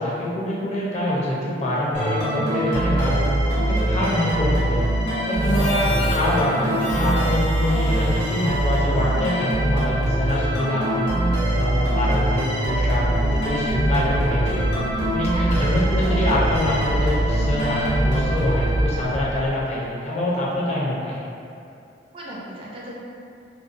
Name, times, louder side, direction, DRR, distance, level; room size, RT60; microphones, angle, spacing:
voice 1, 0.0-3.3 3.8-4.8 5.2-14.6 15.1-21.2, left 1 dB, 40° left, -6 dB, 0.5 m, -25 dB
sound 1, 1.9-19.5, right 1 dB, 65° left, 0.8 m, -23 dB
Harmonica, 5.3-9.9, left 2 dB, 90° left, 0.3 m, -35 dB
voice 2, 5.8-6.2 14.2-14.6 15.3-15.7 22.1-22.9, right 1 dB, 30° right, -5 dB, 0.4 m, -36 dB
sound 2, 11.3-19.5, left 1 dB, 85° right, 0.8 m, -32 dB
2.6 x 2.1 x 2.5 m, 2.6 s
head